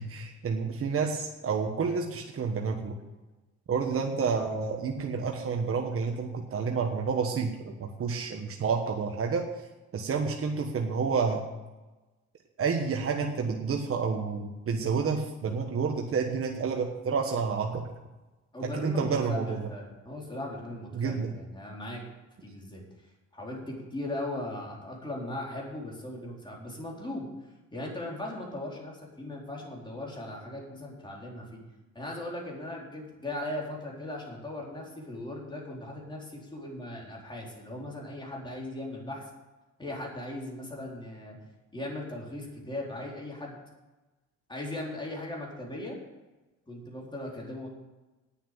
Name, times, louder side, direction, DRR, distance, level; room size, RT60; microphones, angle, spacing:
voice 1, 0.0-2.9 3.7-9.5 9.9-11.4 12.6-17.8 18.7-19.7 20.9-21.3, right 5 dB, 45° right, 2 dB, 1.4 m, -29 dB
voice 2, 18.5-22.0 22.4-22.8 23.3-27.3 27.7-31.5 31.9-39.2 39.8-41.4 41.7-43.6 44.5-46.0 46.7-47.7, left 1 dB, 15° left, -2 dB, 4.1 m, -38 dB
9.2 x 7.2 x 9.1 m, 1.1 s
cardioid pair, 90°, 30 cm